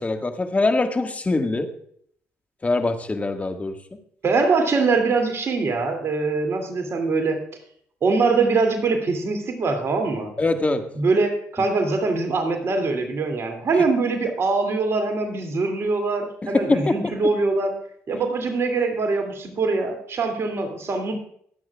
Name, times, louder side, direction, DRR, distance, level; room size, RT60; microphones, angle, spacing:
voice 1, 0.0-1.7 2.6-3.7 10.4-10.8 16.4-17.1, left 2 dB, 25° left, 5 dB, 1.8 m, -23 dB
voice 2, 4.2-7.4 8.0-10.3 11.0-17.7 18.1-21.1, right 3 dB, 50° right, 5 dB, 2.6 m, -23 dB
22.0 x 9.1 x 2.4 m, 0.64 s
supercardioid pair, 60°, 6 cm